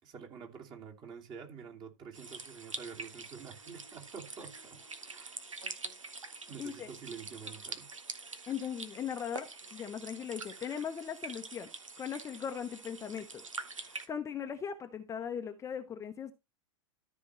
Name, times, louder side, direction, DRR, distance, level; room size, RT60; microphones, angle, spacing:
voice 1, 0.0-4.8 5.1-5.4 6.5-7.9, right 6 dB, 30° right, 2.7 m, -48 dB
sound 1, 2.1-14.1, right 4 dB, 85° right, 1.5 m, -45 dB
voice 2, 6.6-6.9 8.5-11.7 12.0-13.4 13.7-16.3, left 8 dB, 20° left, 0.9 m, -39 dB
13.5 x 5.5 x 3.2 m
figure-of-eight pair, 105°, 16 cm